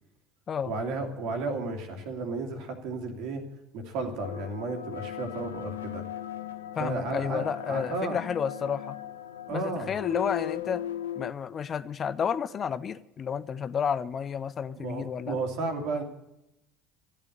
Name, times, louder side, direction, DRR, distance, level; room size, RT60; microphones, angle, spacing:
voice 1, 0.6-3.4 3.7-6.0 6.8-8.2 9.5-10.0 14.8-16.0, right 3 dB, 60° right, 3 dB, 2.8 m, -33 dB
sound 1, 4.2-11.3, left 11 dB, 80° left, 0.8 m, -38 dB
voice 2, 6.8-9.0 9.5-10.8 11.2-15.4, left 7 dB, 35° left, 15 dB, 0.6 m, -31 dB
13.5 x 9.0 x 10.0 m, 0.86 s
figure-of-eight pair, 70°, 0 cm